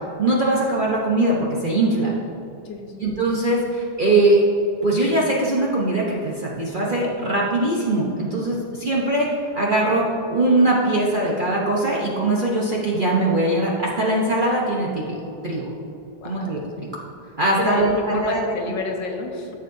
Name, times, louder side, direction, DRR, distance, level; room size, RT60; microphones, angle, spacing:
voice 1, 0.2-2.1 3.0-4.4 4.8-15.2 15.4-15.7 16.2-16.6 17.4-18.5, right 2 dB, 40° right, -4 dB, 0.8 m, -21 dB
voice 2, 2.6-3.0 16.2-16.9 17.6-19.5, left 3 dB, 80° left, 2 dB, 1.7 m, -30 dB
13.5 x 6.7 x 2.7 m, 2.7 s
omnidirectional pair, 1.9 m